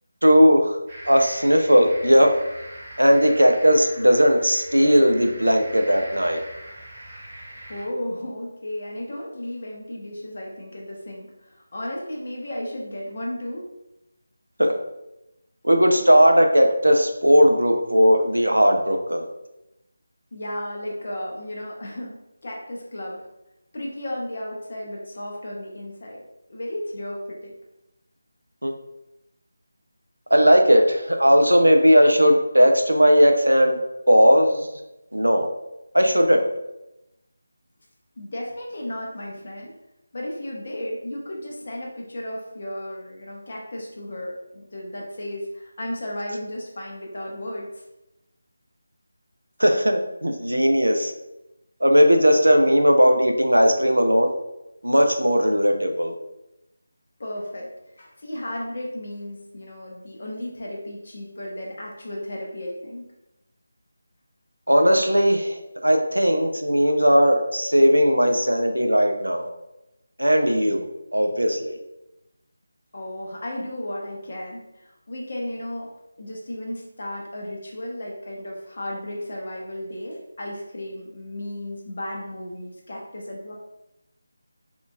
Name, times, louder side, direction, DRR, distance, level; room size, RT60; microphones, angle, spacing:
voice 1, 0.2-0.8 1.1-2.3 3.0-6.4 14.6-14.7 15.6-19.3 28.6-28.7 30.3-33.8 34.1-34.7 35.1-35.5 35.9-36.5 49.6-51.1 51.8-54.3 54.8-56.1 64.7-69.5 70.2-70.8 71.1-71.8, equal, 90° right, 4 dB, 0.5 m, -17 dB
sound 1, 0.9-7.8, right 1 dB, 30° right, 1.1 m, -42 dB
voice 2, 7.7-13.6 20.3-22.2 22.4-23.2 23.7-26.2 26.5-27.5 38.2-39.7 40.1-47.8 57.2-57.7 58.0-63.1 72.9-75.9 76.2-83.5, left 1 dB, 50° left, -2 dB, 0.8 m, -34 dB
3.6 x 2.4 x 2.3 m, 0.91 s
figure-of-eight pair, 160°, 0 cm